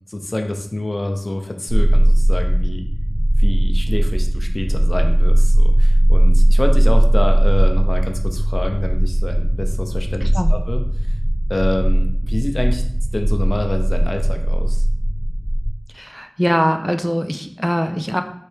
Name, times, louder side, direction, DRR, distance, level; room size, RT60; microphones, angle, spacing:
voice 1, 0.1-2.9 3.4-10.8 11.5-12.8 13.1-14.8, left 1 dB, 60° left, 4 dB, 0.6 m, -26 dB
sound 1, 1.7-15.7, right 1 dB, 55° right, 1.2 m, -17 dB
voice 2, 10.2-10.5 15.9-18.2, equal, ahead, 6 dB, 0.4 m, -22 dB
4.5 x 3.3 x 3.3 m, 0.66 s
wide cardioid pair, 45°, 0 cm